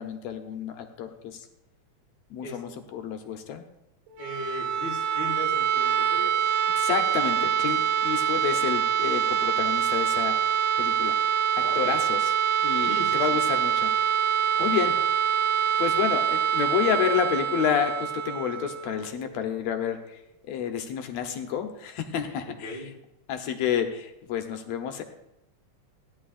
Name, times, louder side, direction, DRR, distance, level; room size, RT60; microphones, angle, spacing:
voice 1, 0.0-1.5 2.3-3.6 6.8-10.4 10.8-11.2 11.6-12.3 12.6-13.9 14.6-15.0 15.8-20.2 20.5-22.7 23.3-25.0, left 8 dB, 70° left, 6 dB, 2.1 m, -29 dB
sound 1, 4.1-19.9, right 9 dB, 85° right, 2.3 m, -25 dB
voice 2, 4.2-6.4 11.6-12.0 12.8-13.4 14.6-14.9 22.5-22.9, left 2 dB, 45° left, -2 dB, 1.5 m, -37 dB
17.0 x 11.0 x 2.5 m, 0.86 s
omnidirectional pair, 3.5 m